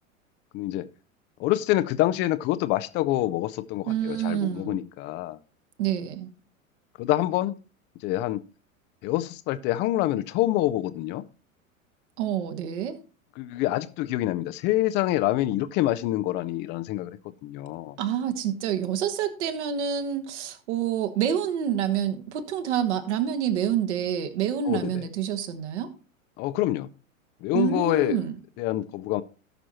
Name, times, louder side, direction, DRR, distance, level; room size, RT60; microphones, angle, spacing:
voice 1, 0.5-0.9 1.4-5.4 7.0-7.6 8.0-8.4 9.0-11.2 13.4-18.0 24.7-24.9 26.4-26.9 27.4-28.2 28.6-29.2, left 15 dB, 25° left, 0.5 m, -26 dB
voice 2, 3.9-4.8 5.8-6.3 12.2-13.0 18.0-25.9 27.5-28.4, right 9 dB, 55° right, 1.5 m, -27 dB
18.0 x 6.1 x 2.9 m
figure-of-eight pair, 90°, 41 cm